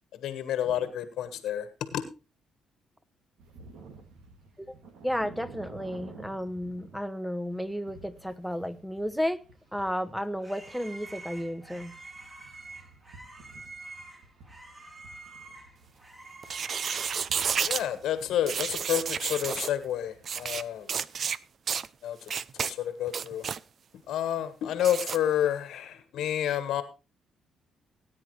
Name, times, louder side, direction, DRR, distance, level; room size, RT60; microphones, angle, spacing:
voice 1, 0.1-2.0 17.7-20.9 22.0-23.5 24.1-26.8, left 10 dB, 80° left, 1.4 m, -30 dB
sound 1, 3.4-20.8, right 4 dB, 85° right, 2.3 m, -53 dB
voice 2, 5.0-9.4 9.7-12.0, equal, ahead, 0.9 m, -33 dB
sound 2, 9.8-17.7, right 3 dB, 25° right, 3.7 m, -47 dB
sound 3, 16.4-17.8 18.5-19.7 20.2-20.6 20.9-21.4 21.7-21.9 22.3-22.7 23.1-23.6 24.8-25.2, right 7 dB, 50° right, 0.5 m, -31 dB
18.0 x 9.6 x 3.2 m
cardioid pair, 90°, 0 cm